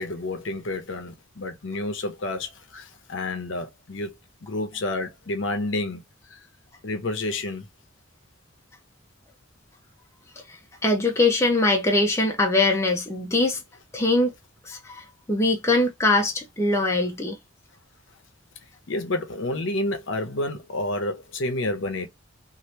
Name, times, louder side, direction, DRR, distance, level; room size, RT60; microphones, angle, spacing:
voice 1, 0.0-4.1 4.4-6.0 6.3-6.4 6.8-7.7 18.9-22.1, left 2 dB, 70° left, 0.8 m, -29 dB
voice 2, 10.8-13.6 13.9-14.3 14.6-17.4, left 2 dB, 15° left, 0.7 m, -22 dB
2.8 x 2.6 x 3.2 m
head